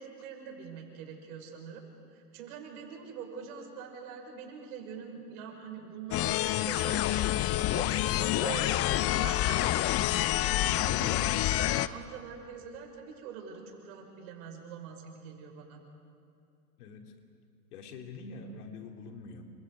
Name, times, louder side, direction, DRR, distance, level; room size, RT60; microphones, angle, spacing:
voice 1, 0.0-9.8 10.5-15.8, right 6 dB, 60° right, 2 dB, 6.2 m, -44 dB
sound 1, 6.1-11.9, left 14 dB, 30° left, 0.7 m, -27 dB
voice 2, 16.8-17.1 17.7-19.5, left 3 dB, 65° left, 3 dB, 3.2 m, -45 dB
29.5 x 26.5 x 5.0 m, 2.6 s
hypercardioid pair, 100°, 48 cm